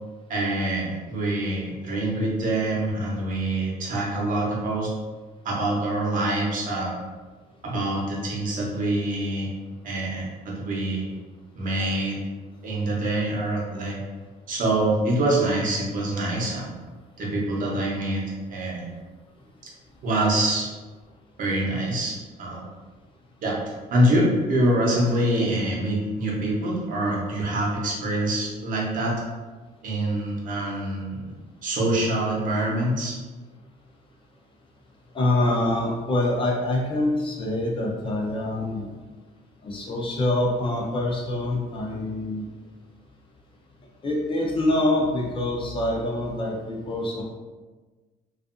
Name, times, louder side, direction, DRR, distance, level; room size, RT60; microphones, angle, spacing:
voice 1, 0.3-4.9 5.4-6.9 7.6-9.5 9.8-11.1 11.5-12.2 12.6-14.0 14.5-16.7 17.2-18.2 18.5-18.9 20.0-20.7 21.4-22.6 23.4-23.6 23.9-29.1 29.8-31.3 31.6-33.2, right 1 dB, 50° right, -3 dB, 0.8 m, -25 dB
voice 2, 35.1-38.9 39.6-42.5 44.0-47.2, left 1 dB, 30° left, -2 dB, 0.6 m, -25 dB
2.6 x 2.4 x 2.5 m, 1.3 s
cardioid pair, 110°, 17 cm